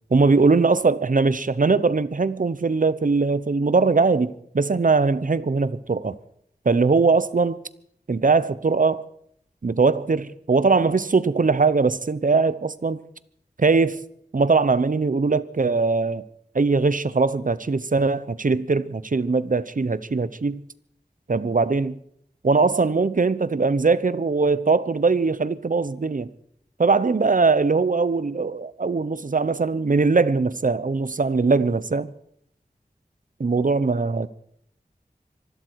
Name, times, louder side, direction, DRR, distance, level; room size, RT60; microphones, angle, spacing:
voice 1, 0.1-6.2 6.6-7.6 8.1-9.1 9.6-13.0 13.6-14.0 14.3-16.2 16.5-20.6 21.3-22.0 22.4-26.3 26.8-32.1 33.4-34.3, right 4 dB, 55° right, 0.9 m, -21 dB
25.0 x 12.0 x 4.8 m
wide cardioid pair, 60°, 16 cm